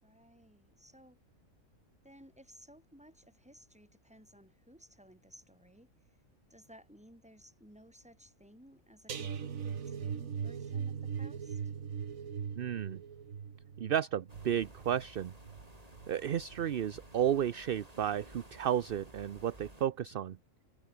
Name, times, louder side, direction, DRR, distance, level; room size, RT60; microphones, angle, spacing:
voice 1, 0.0-1.2 2.0-6.2 6.5-11.6, equal, 5° right, 5.0 m, -58 dB
sound 1, 9.1-16.2 16.5-16.8 17.2-17.3, right 7 dB, 90° right, 1.8 m, -40 dB
voice 2, 12.6-13.0 13.8-15.3 16.1-20.4, right 10 dB, 55° right, 0.8 m, -32 dB
sound 2, 14.3-19.8, right 1 dB, 25° right, 6.1 m, -55 dB
omnidirectional pair, 1.4 m